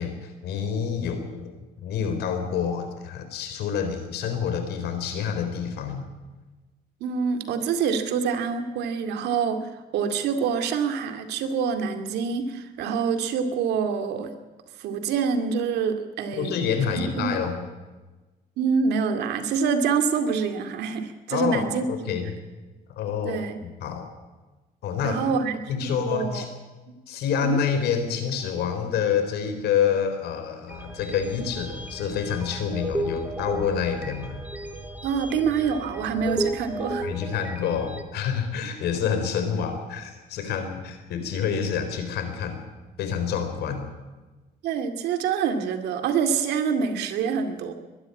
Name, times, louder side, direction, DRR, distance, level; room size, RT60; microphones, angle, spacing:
voice 1, 0.0-1.5 1.8-6.1 16.4-17.6 21.3-22.4 22.9-24.1 24.8-25.2 25.7-26.5 27.1-34.4 37.0-42.6 43.0-43.9, left 7 dB, 75° left, 8 dB, 4.0 m, -28 dB
voice 2, 7.0-14.3 14.8-16.5 16.9-17.3 18.6-22.1 23.2-23.6 25.0-26.5 26.9-27.0 27.4-27.6 35.0-37.1 44.6-47.7, right 6 dB, 80° right, 7 dB, 2.4 m, -26 dB
sound 1, 30.7-38.0, right 1 dB, 10° right, 2.3 m, -34 dB
21.5 x 12.5 x 9.8 m, 1.2 s
cardioid pair, 110°, 17 cm